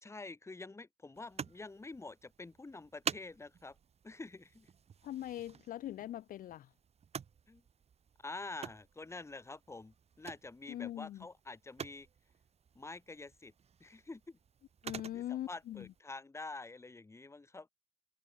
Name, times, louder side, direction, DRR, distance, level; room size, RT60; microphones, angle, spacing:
voice 1, 0.0-3.8 4.0-4.7 7.5-7.6 8.2-12.1 12.7-13.5 13.8-14.4 15.1-17.7, left 3 dB, 15° left, 3.2 m, -47 dB
sound 1, 1.1-16.0, right 7 dB, 40° right, 2.2 m, -49 dB
voice 2, 5.0-6.7 10.7-11.2 14.8-15.8, left 12 dB, 55° left, 0.6 m, -41 dB
cardioid pair, 110°, 17 cm